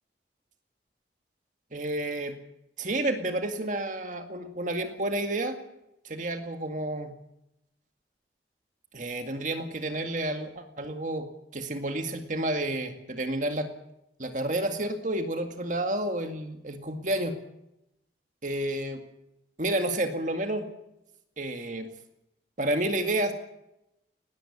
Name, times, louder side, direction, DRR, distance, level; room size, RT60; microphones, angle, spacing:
voice 1, 1.7-2.3 2.8-5.6 6.0-7.1 8.9-11.3 11.5-13.7 14.2-17.3 18.4-19.0 19.6-20.7 21.4-21.9 22.6-23.3, right 1 dB, 45° right, 6 dB, 2.1 m, -30 dB
19.5 x 17.5 x 8.8 m, 0.84 s
head